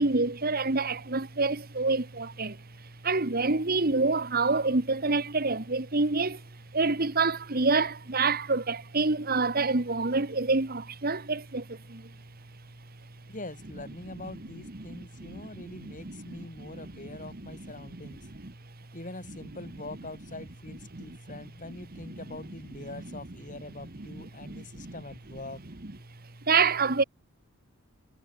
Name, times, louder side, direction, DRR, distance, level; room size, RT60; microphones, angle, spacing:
voice 1, 0.0-2.6 3.0-6.4 6.7-12.1 14.9-15.4 15.8-16.9 17.9-18.0 18.4-18.5 20.9-21.2 22.1-22.2 24.1-24.9 26.5-27.0, right 3 dB, 45° right, 1.4 m, -27 dB
voice 2, 13.3-18.3 18.9-25.6, left 2 dB, 35° left, 3.6 m, -43 dB
head